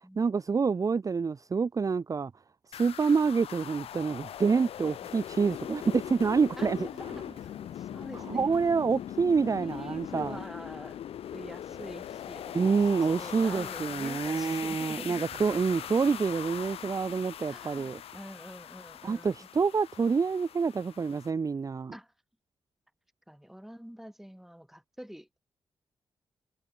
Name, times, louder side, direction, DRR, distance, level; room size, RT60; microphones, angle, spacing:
voice 1, 0.2-2.3 2.7-6.9 8.1-10.4 12.5-18.0 19.0-21.9, right 5 dB, 35° right, 0.4 m, -27 dB
sound 1, 2.7-21.3, left 10 dB, 80° left, 1.1 m, -41 dB
voice 2, 6.6-8.5 9.5-11.0 11.3-15.3 17.5-19.5 21.9-22.1 23.3-25.4, equal, 5° right, 1.8 m, -46 dB
sound 2, 6.9-14.9 15.3-17.6, right 7 dB, 65° right, 2.3 m, -58 dB
supercardioid pair, 45°, 10 cm